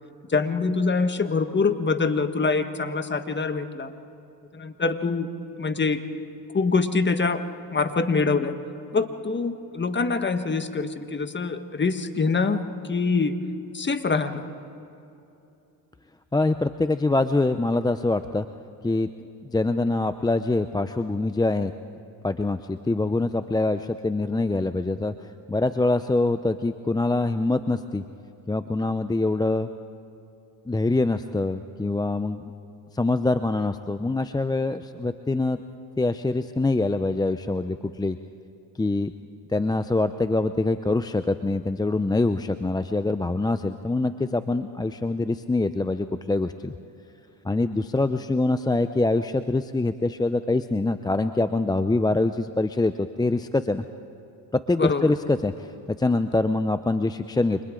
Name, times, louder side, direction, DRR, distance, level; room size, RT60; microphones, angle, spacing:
voice 1, 0.3-3.9 4.5-5.3 5.6-6.0 6.5-7.4 7.7-8.6 8.9-13.4 13.7-14.4 54.8-55.1, left 4 dB, 25° left, 8 dB, 1.6 m, -24 dB
voice 2, 16.3-18.5 18.8-19.1 19.4-21.7 22.2-25.1 25.5-28.0 28.5-29.7 30.7-32.4 32.9-35.6 36.0-38.2 38.8-39.1 39.5-46.7 47.4-53.8 54.7-55.7 56.0-57.6, left 2 dB, 10° left, 10 dB, 0.6 m, -24 dB
29.5 x 26.0 x 3.8 m, 2.8 s
supercardioid pair, 75°, 43 cm